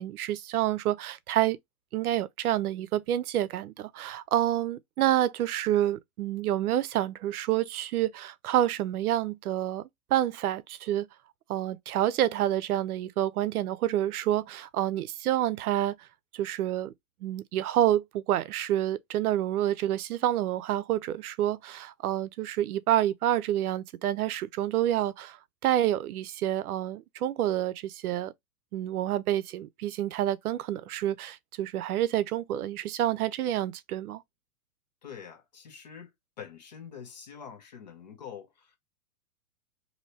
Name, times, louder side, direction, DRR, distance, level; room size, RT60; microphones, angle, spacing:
voice 1, 0.0-1.6 1.9-9.8 10.1-11.1 11.5-15.9 16.3-16.9 17.2-25.4 25.6-28.3 28.7-34.2, right 12 dB, 85° right, 0.6 m, -28 dB
voice 2, 35.0-36.1 36.4-38.7, left 7 dB, 30° left, 0.5 m, -45 dB
3.1 x 2.7 x 2.7 m
hypercardioid pair, 170°, 44 cm